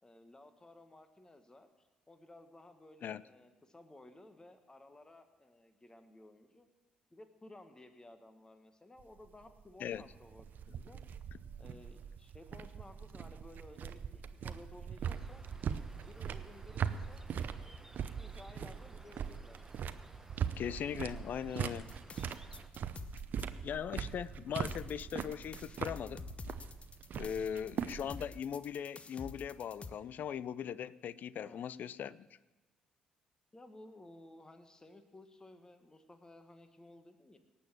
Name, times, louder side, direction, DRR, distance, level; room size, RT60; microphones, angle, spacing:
voice 1, 0.0-6.7 7.1-11.0 11.6-15.5 16.0-19.6 27.2-27.7 31.4-31.6 33.5-37.4, left 1 dB, 20° left, 8 dB, 1.5 m, -56 dB
sound 1, 9.0-28.3, right 7 dB, 55° right, 0.7 m, -41 dB
sound 2, 15.0-22.7, right 1 dB, 10° right, 1.2 m, -58 dB
voice 2, 20.6-21.9 23.6-26.2 27.2-32.3, left 8 dB, 55° left, 19 dB, 0.4 m, -39 dB
sound 3, 21.9-23.4 24.7-29.9, left 4 dB, 35° left, 0.8 m, -48 dB
18.0 x 7.0 x 7.5 m, 1.1 s
hypercardioid pair, 50°, 4 cm